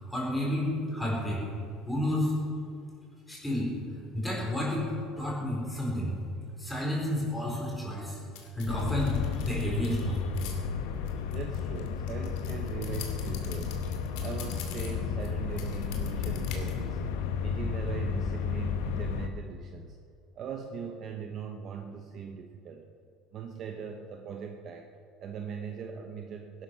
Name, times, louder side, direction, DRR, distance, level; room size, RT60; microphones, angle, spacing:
voice 1, 0.0-1.4 1.8-2.3 3.3-3.7 4.1-6.2 6.6-8.2 8.5-10.3, left 1 dB, 5° left, -4 dB, 4.4 m, -30 dB
sound 1, 8.4-10.5 11.1-15.3 15.6-16.7, left 9 dB, 70° left, 2.6 m, -45 dB
sound 2, 8.7-19.3, left 6 dB, 85° left, 1.2 m, -33 dB
voice 2, 11.3-13.8 14.2-17.0 17.4-20.0 20.4-22.9 23.3-24.9 25.2-26.6, right 7 dB, 35° right, 4 dB, 0.9 m, -40 dB
19.0 x 11.5 x 5.9 m, 2.4 s
cardioid pair, 165°, 0 cm